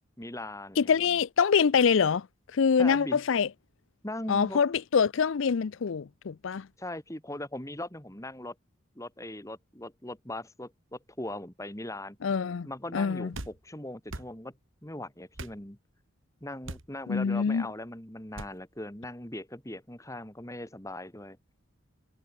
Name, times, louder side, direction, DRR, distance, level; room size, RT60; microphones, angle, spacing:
voice 1, 0.2-1.1 2.8-3.2 4.0-4.6 6.8-8.5 8.9-12.2 12.6-14.5 14.8-15.8 16.4-21.4, left 1 dB, 15° left, 2.7 m, -40 dB
voice 2, 0.8-2.3 2.5-3.5 4.3-6.7 12.2-13.3 17.1-17.7, left 6 dB, 70° left, 0.5 m, -25 dB
sound 1, 13.3-13.6 14.1-14.3 15.3-15.6 16.6-16.9 18.3-18.5, right 2 dB, 70° right, 3.0 m, -40 dB
head